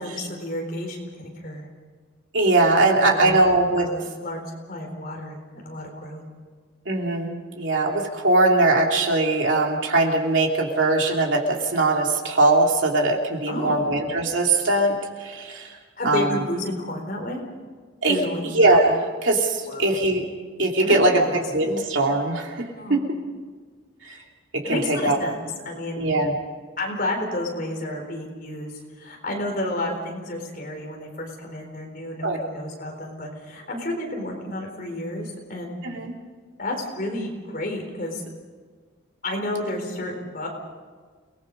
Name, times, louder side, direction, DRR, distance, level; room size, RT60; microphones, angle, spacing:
voice 1, 0.0-1.7 3.0-4.4 4.7-6.2 13.5-13.8 16.0-17.4 18.1-18.5 19.7-20.0 20.8-21.3 22.8-23.0 24.6-26.2 26.8-35.8 36.6-38.2 39.2-40.5, left 1 dB, 45° left, 1 dB, 4.3 m, -31 dB
voice 2, 2.3-3.9 6.9-15.8 16.0-16.3 18.0-18.3 18.5-20.2 20.6-21.2 21.5-23.0 24.0-24.2 24.5-25.2 26.0-26.4 32.2-32.4 35.8-36.1, right 2 dB, 75° right, 1 dB, 2.9 m, -21 dB
29.0 x 19.5 x 5.3 m, 1.5 s
head